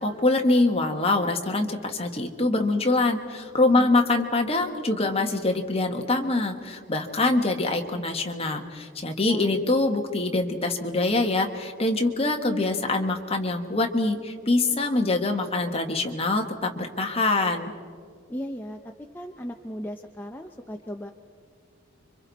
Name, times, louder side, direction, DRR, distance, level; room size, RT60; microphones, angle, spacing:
voice 1, 0.0-17.7, left 2 dB, 30° left, 3 dB, 1.5 m, -24 dB
voice 2, 18.3-18.8 19.1-21.1, equal, 10° left, 2 dB, 0.7 m, -36 dB
29.5 x 24.5 x 4.2 m, 2.1 s
head